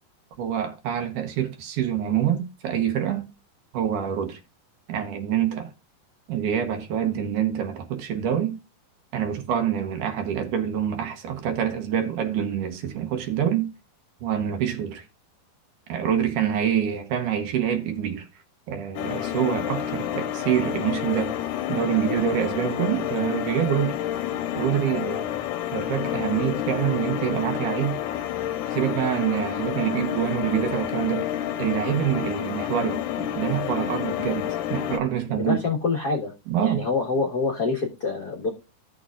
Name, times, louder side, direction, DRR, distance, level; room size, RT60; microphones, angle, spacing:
voice 1, 0.4-3.3 3.7-4.4 4.9-5.7 6.3-8.6 9.1-13.7 14.2-15.1 15.9-18.3 18.7-21.4 21.7-24.0 24.6-25.3 25.7-28.0 28.7-31.3 31.6-35.6 36.5-36.9, right 9 dB, 70° right, 2.4 m, -26 dB
sound 1, 19.0-35.0, left 11 dB, 75° left, 2.1 m, -29 dB
voice 2, 35.4-36.3 36.6-38.5, left 4 dB, 50° left, 1.2 m, -26 dB
15.5 x 6.7 x 2.4 m
omnidirectional pair, 4.0 m